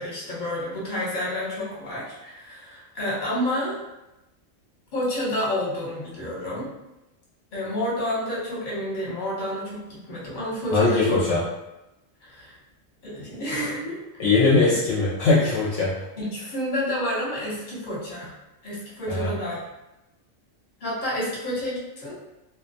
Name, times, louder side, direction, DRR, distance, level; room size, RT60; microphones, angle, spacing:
voice 1, 0.0-3.8 4.9-6.7 7.5-11.2 12.2-12.6 13.0-14.0 14.6-14.7 16.2-18.3 18.6-19.6 20.8-22.1, left 1 dB, 45° left, -6 dB, 0.9 m, -29 dB
voice 2, 10.7-11.4 14.2-15.9 19.1-19.3, left 3 dB, 70° left, -6 dB, 0.8 m, -20 dB
2.3 x 2.1 x 2.6 m, 0.94 s
omnidirectional pair, 1.3 m